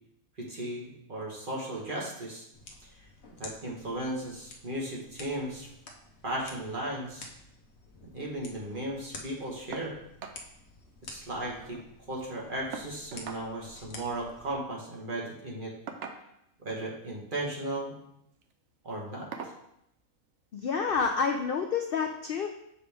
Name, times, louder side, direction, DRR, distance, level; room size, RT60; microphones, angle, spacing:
voice 1, 0.4-2.5 3.0-3.1 3.4-5.7 6.2-7.3 8.1-9.9 11.0-11.8 12.1-15.7 16.6-17.9 18.8-19.3, right 1 dB, 40° right, -3 dB, 1.4 m, -36 dB
sound 1, 2.5-14.5, left 2 dB, 55° left, 1.1 m, -50 dB
sound 2, 9.7-9.9 10.2-10.4 10.8-10.9 11.2-11.9 12.7-13.5 14.7-14.9 15.9-16.5 17.6-17.9 18.3-18.5 19.3-19.6 20.9-21.0 21.5-21.6, right 6 dB, 60° right, 0.9 m, -42 dB
voice 2, 20.5-22.5, left 5 dB, 70° left, 4 dB, 0.5 m, -28 dB
7.2 x 5.0 x 3.5 m, 0.77 s
omnidirectional pair, 1.5 m